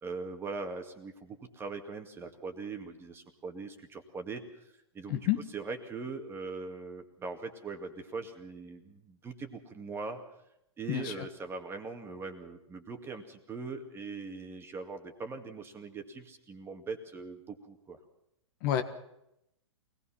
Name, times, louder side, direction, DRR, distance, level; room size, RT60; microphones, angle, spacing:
voice 1, 0.0-4.6 4.9-10.2 10.8-18.0, right 4 dB, 15° right, 5 dB, 2.2 m, -41 dB
voice 2, 5.1-5.4 10.9-11.3 18.6-18.8, left 12 dB, 40° left, 8 dB, 1.6 m, -29 dB
23.5 x 18.5 x 5.8 m, 0.81 s
hypercardioid pair, 140°, 17 cm